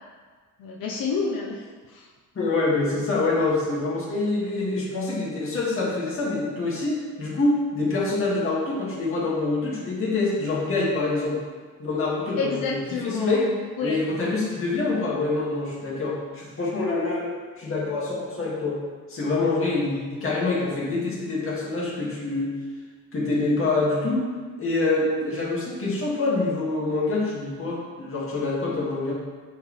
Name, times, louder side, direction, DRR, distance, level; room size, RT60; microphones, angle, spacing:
voice 1, 0.6-2.1 12.4-14.0, left 4 dB, 85° left, -2 dB, 0.8 m, -30 dB
voice 2, 2.3-11.4 11.8-13.4 13.8-18.8 19.1-22.5 23.1-24.2 24.6-29.1, left 3 dB, 40° left, -6 dB, 2.0 m, -26 dB
9.2 x 4.5 x 3.3 m, 1.5 s
cardioid pair, 150°, 35 cm